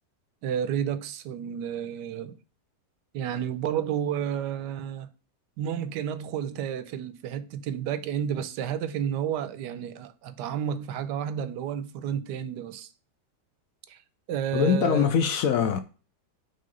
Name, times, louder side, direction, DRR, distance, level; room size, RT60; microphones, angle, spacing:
voice 1, 0.4-2.4 3.1-5.1 5.6-12.9 13.9-14.0 14.3-15.1, right 9 dB, 85° right, 1.2 m, -31 dB
voice 2, 14.5-15.8, left 7 dB, 70° left, 0.9 m, -23 dB
5.6 x 3.3 x 5.2 m
omnidirectional pair, 1.8 m